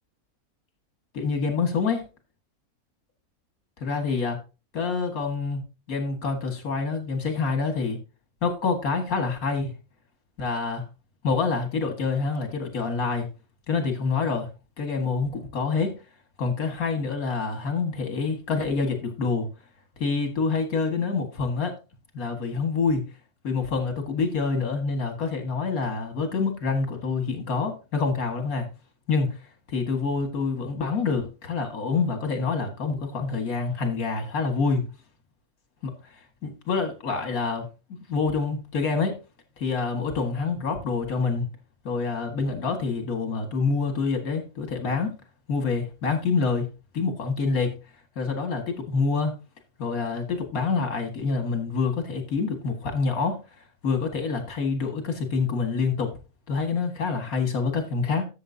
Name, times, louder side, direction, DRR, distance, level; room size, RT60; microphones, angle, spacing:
voice 1, 1.1-2.0 3.8-4.4 4.7-5.6 5.9-8.0 8.4-9.7 10.4-10.8 11.2-13.3 13.7-14.5 14.8-15.9 16.4-19.5 20.0-21.7 22.1-23.0 23.4-28.7 29.1-29.3 29.7-34.9 35.8-35.9 36.4-39.1 39.6-41.5 41.8-45.1 45.5-46.7 46.9-47.7 48.2-49.3 49.8-53.4 53.8-56.1 56.5-58.2, left 4 dB, 75° left, 2.3 m, -26 dB
13.0 x 7.3 x 2.8 m
omnidirectional pair, 1.5 m